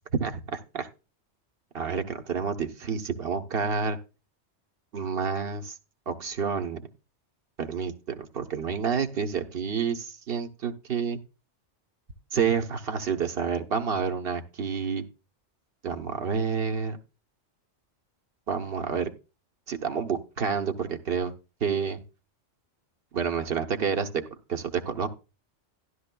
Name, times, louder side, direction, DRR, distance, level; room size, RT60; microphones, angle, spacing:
voice 1, 0.2-0.9 1.7-4.0 4.9-5.7 6.1-6.8 7.6-11.2 12.3-15.0 15.8-17.0 18.5-19.1 19.7-21.3 21.6-22.0 23.1-24.1 24.5-25.1, right 6 dB, 55° right, 7 dB, 1.1 m, -29 dB
13.0 x 11.5 x 2.2 m, 0.31 s
omnidirectional pair, 1.2 m